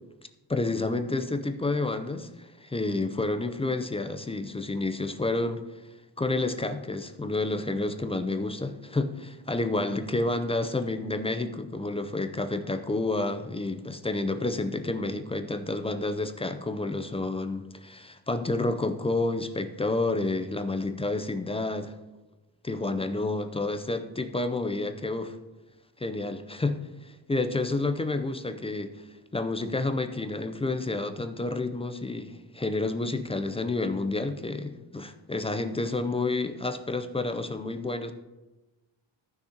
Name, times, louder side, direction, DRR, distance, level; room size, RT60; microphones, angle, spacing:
voice 1, 0.5-5.6 6.2-21.9 22.6-25.4 26.0-28.9 29.3-38.1, left 2 dB, 15° left, 8 dB, 0.5 m, -30 dB
14.5 x 6.5 x 2.8 m, 1.1 s
cardioid pair, 110°, 47 cm